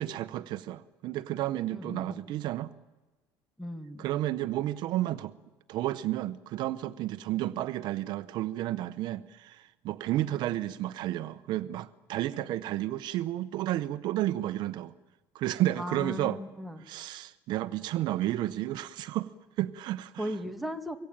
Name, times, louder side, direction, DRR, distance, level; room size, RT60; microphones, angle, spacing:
voice 1, 0.0-2.7 4.0-5.3 5.7-14.9 15.3-16.4 16.8-19.3 19.6-20.4, right 14 dB, 60° right, 0.9 m, -32 dB
voice 2, 1.7-2.3 3.6-4.1 15.8-16.8 20.2-21.0, equal, ahead, 2.0 m, -37 dB
24.0 x 23.0 x 9.0 m
cardioid pair, 145°, 8 cm